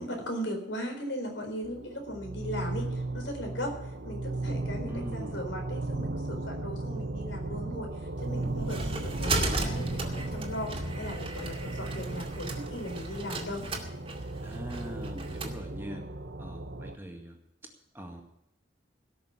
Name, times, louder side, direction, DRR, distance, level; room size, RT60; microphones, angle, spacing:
voice 1, 0.0-3.7 4.0-13.7, equal, 75° left, 3 dB, 4.3 m, -38 dB
sound 1, 1.6-17.0, right 2 dB, 65° right, 1.0 m, -36 dB
voice 2, 4.9-5.4 14.4-16.1 16.4-17.4 17.6-18.2, equal, 10° right, 2 dB, 2.0 m, -42 dB
sound 2, 8.2-15.6, right 2 dB, 30° right, 2.2 m, -35 dB
17.5 x 6.8 x 8.2 m, 0.80 s
head